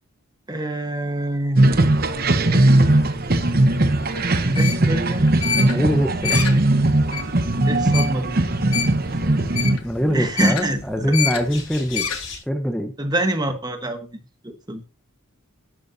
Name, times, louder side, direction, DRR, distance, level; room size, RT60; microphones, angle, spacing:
voice 1, 0.5-1.7 4.4-5.3 7.7-8.4 10.1-11.1 13.0-14.8, right 1 dB, 20° right, 7 dB, 1.3 m, -25 dB
sound 1, 1.6-9.8, right 1 dB, 45° right, 1.0 m, -19 dB
sound 2, 1.8-12.4, left 7 dB, 80° left, 1.6 m, -30 dB
sound 3, 4.9-12.4, left 3 dB, 60° left, 6.0 m, -43 dB
voice 2, 5.6-6.4 9.8-12.1 12.5-12.9, equal, 5° left, 5 dB, 0.9 m, -23 dB
13.5 x 11.0 x 2.8 m, 0.31 s
head